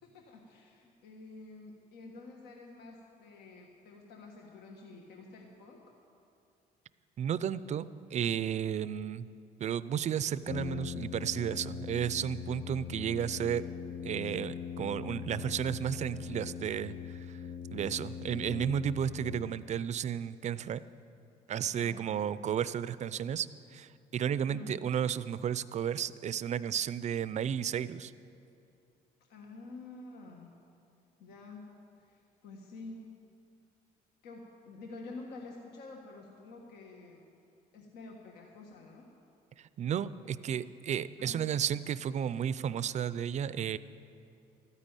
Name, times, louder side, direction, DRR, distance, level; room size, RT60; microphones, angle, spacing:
voice 1, 0.0-5.9 21.7-22.0 24.5-24.8 29.3-30.5 31.2-33.1 34.2-37.3 37.7-39.1 41.2-41.4, left 3 dB, 75° left, 0 dB, 1.6 m, -49 dB
voice 2, 7.2-9.3 9.6-13.6 14.0-17.4 17.7-20.8 21.5-23.5 23.7-28.1 39.6-43.8, right 9 dB, 45° right, 16 dB, 0.5 m, -33 dB
Brass instrument, 10.4-19.9, left 7 dB, 45° left, 0.7 m, -41 dB
13.5 x 9.8 x 9.0 m, 2.6 s
cardioid pair, 110°, 17 cm